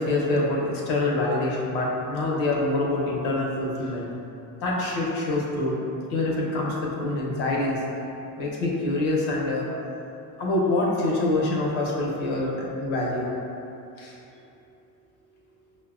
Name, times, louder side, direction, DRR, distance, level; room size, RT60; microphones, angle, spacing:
voice 1, 0.0-4.1 4.6-5.8 6.1-7.8 8.4-9.6 10.4-13.3 14.0-14.1, left 2 dB, 70° left, -3 dB, 1.0 m, -25 dB
5.4 x 2.2 x 2.4 m, 2.8 s
hypercardioid pair, 75°, 48 cm